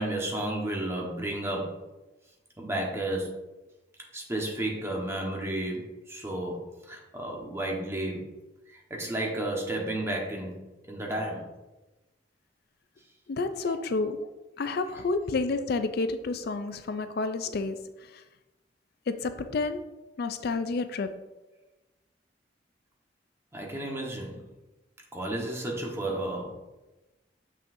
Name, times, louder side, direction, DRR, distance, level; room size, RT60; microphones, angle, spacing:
voice 1, 0.0-1.8 2.6-3.4 4.1-8.3 8.7-11.5 13.6-13.8 23.5-24.4 25.1-26.6, right 1 dB, 15° right, -1 dB, 1.2 m, -32 dB
voice 2, 13.3-14.2 14.6-17.8 18.1-18.2 19.1-19.8 20.2-21.1, left 3 dB, 60° left, 10 dB, 0.4 m, -30 dB
6.9 x 6.2 x 2.6 m, 1.1 s
head